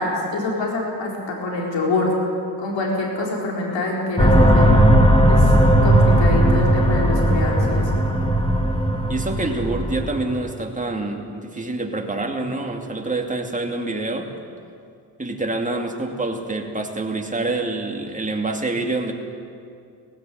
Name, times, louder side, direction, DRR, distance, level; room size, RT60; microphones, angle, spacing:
voice 1, 0.0-2.1 2.6-4.7 5.3-5.6 5.8-7.9, left 2 dB, 85° left, -1 dB, 4.4 m, -25 dB
sound 1, 4.2-10.5, right 1 dB, 10° left, 2.4 m, -16 dB
voice 2, 9.1-14.3 15.2-19.1, right 2 dB, 15° right, 2 dB, 2.5 m, -26 dB
17.5 x 16.5 x 9.3 m, 2.4 s
cardioid pair, 80°, 43 cm